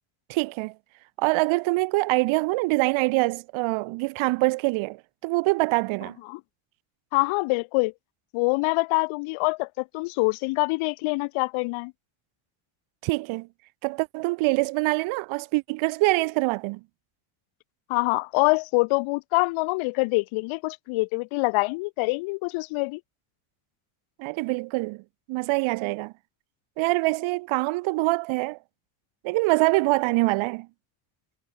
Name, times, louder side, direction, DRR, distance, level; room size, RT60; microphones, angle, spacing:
voice 1, 0.3-0.7 1.2-6.2 13.0-13.5 13.8-16.8 24.2-25.0 25.3-26.1 26.8-28.6 29.2-30.7, right 24 dB, 70° right, 0.8 m, -24 dB
voice 2, 7.1-7.9 8.3-11.9 17.9-23.0, left 26 dB, 75° left, 0.7 m, -25 dB
cardioid pair, 140°, 49 cm